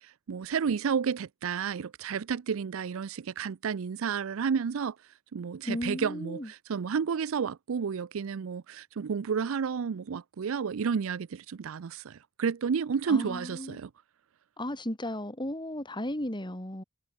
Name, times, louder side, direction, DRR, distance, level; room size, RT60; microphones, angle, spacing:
voice 1, 0.0-5.0 5.3-13.9, right 6 dB, 70° right, 0.4 m, -31 dB
voice 2, 5.6-6.5 13.1-13.8 14.6-16.8, left 1 dB, 20° left, 4.4 m, -35 dB
head